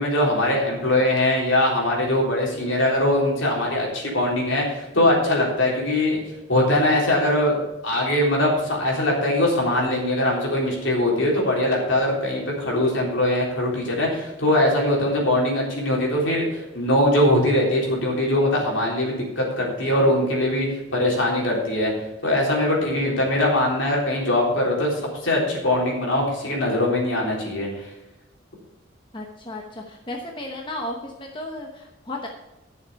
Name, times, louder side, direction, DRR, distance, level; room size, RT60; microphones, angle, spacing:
voice 1, 0.0-6.2 6.5-20.7 20.9-21.9 22.2-27.9, left 1 dB, 75° left, -2 dB, 3.7 m, -21 dB
voice 2, 29.1-32.3, left 1 dB, 25° left, 1 dB, 1.0 m, -34 dB
11.5 x 6.9 x 5.7 m, 1.0 s
head